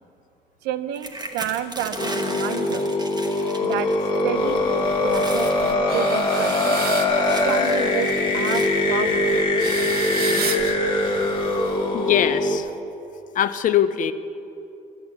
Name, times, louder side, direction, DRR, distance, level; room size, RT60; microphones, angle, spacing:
voice 1, 0.6-2.9 3.6-3.9 4.2-4.6 5.0-6.8 7.4-9.5, right 10 dB, 90° right, 12 dB, 0.6 m, -30 dB
sound 1, 0.9-4.3 4.6-4.8 5.1-5.6 6.2-8.8 9.6-10.2 10.9-11.0 11.3-11.6, right 2 dB, 25° right, 1.1 m, -37 dB
sound 2, 2.0-12.6, left 2 dB, 30° left, 1.4 m, -22 dB
sound 3, 4.3-12.3, right 6 dB, 65° right, 1.0 m, -34 dB
voice 2, 11.9-12.7 13.3-14.1, left 10 dB, 50° left, 12 dB, 0.6 m, -21 dB
12.5 x 7.9 x 7.4 m, 2.8 s
cardioid pair, 110°, 17 cm